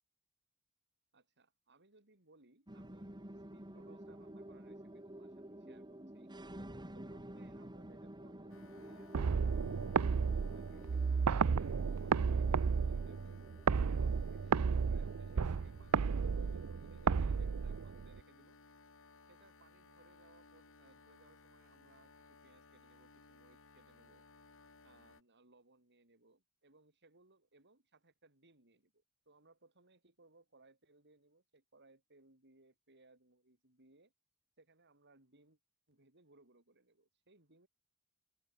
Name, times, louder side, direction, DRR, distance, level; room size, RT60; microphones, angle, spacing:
voice 1, 1.1-3.2 3.5-6.3 6.9-9.7 10.1-11.7 12.0-13.5 14.0-18.6 19.3-24.3 24.8-34.1 34.6-35.6 35.9-37.7, right 2 dB, 50° right, 7.5 m, -67 dB
sound 1, 2.7-17.3, right 1 dB, 20° right, 2.9 m, -52 dB
sound 2, 8.5-25.2, left 3 dB, 65° left, 4.5 m, -61 dB
sound 3, 9.1-18.2, right 5 dB, 90° right, 0.5 m, -33 dB
open air
head